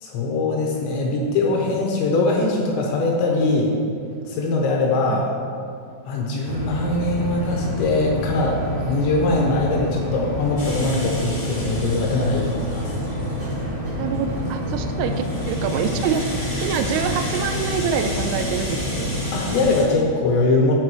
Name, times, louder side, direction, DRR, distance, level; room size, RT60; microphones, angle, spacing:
voice 1, 0.0-3.7 4.3-5.3 6.1-8.6 8.9-12.9 19.3-20.8, left 2 dB, 80° left, -1 dB, 2.9 m, -22 dB
sound 1, 6.4-19.7, equal, 60° right, 1.6 m, -28 dB
Rattle (instrument), 10.6-13.6 14.1-19.8, left 1 dB, 50° left, 1.7 m, -35 dB
voice 2, 14.0-16.3 16.6-19.2, right 7 dB, 85° right, 7 dB, 3.1 m, -26 dB
14.0 x 4.9 x 3.0 m, 2.4 s
omnidirectional pair, 5.7 m